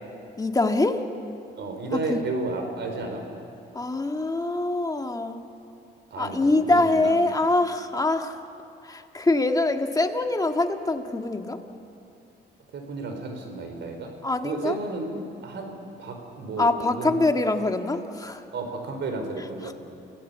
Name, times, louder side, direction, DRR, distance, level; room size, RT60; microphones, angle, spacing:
voice 1, 0.4-1.0 2.1-2.2 3.7-5.4 6.2-8.4 8.8-11.6 14.2-14.8 16.6-18.4 19.6-19.7, left 2 dB, 20° left, 5 dB, 1.8 m, -24 dB
voice 2, 1.6-3.2 6.1-7.2 12.7-14.1 14.4-15.2 15.4-15.7 16.0-17.2 18.5-19.7, right 3 dB, 65° right, 4 dB, 4.7 m, -32 dB
28.5 x 17.0 x 8.2 m, 2.7 s
cardioid pair, 90°, 20 cm